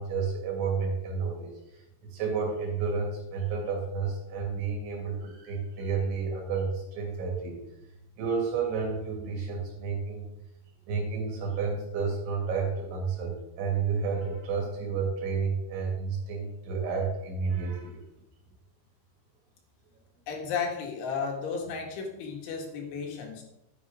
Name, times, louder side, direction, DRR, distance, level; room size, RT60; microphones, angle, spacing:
voice 1, 0.0-1.8 2.1-7.6 8.2-10.3 10.9-18.0, right 5 dB, 75° right, 0 dB, 4.8 m, -31 dB
voice 2, 20.3-23.4, left 5 dB, 80° left, 1 dB, 4.3 m, -33 dB
11.5 x 9.8 x 3.7 m, 0.86 s
omnidirectional pair, 5.4 m